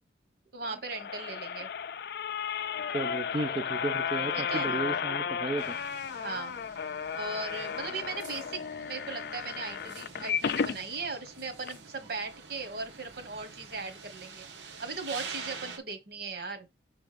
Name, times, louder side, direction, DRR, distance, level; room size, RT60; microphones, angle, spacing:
voice 1, 0.5-1.7 4.3-4.7 6.2-6.5 7.1-8.6 8.9-14.5 14.8-16.7, right 4 dB, 60° right, 1.4 m, -38 dB
sound 1, 0.6-10.8 11.3-11.4 11.6-11.7, left 7 dB, 60° left, 0.4 m, -34 dB
voice 2, 2.9-5.8, right 2 dB, 25° right, 0.4 m, -34 dB
sound 2, 5.6-15.8, right 5 dB, 80° right, 1.4 m, -46 dB
6.2 x 3.4 x 5.0 m
head